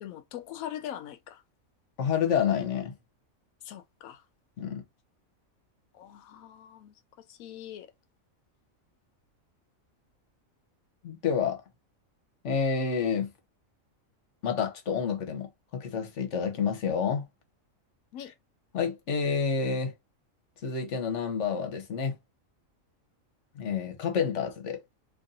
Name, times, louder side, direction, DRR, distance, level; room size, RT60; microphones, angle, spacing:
voice 1, 0.0-1.4 3.6-4.2 5.9-6.9 7.3-7.9 18.1-18.3, left 11 dB, 85° left, 1.0 m, -42 dB
voice 2, 2.0-2.9 4.6-4.8 11.0-11.6 12.4-13.3 14.4-17.2 18.7-19.9 20.6-22.2 23.6-24.8, left 6 dB, 65° left, 1.2 m, -29 dB
3.0 x 2.6 x 3.9 m
omnidirectional pair, 1.4 m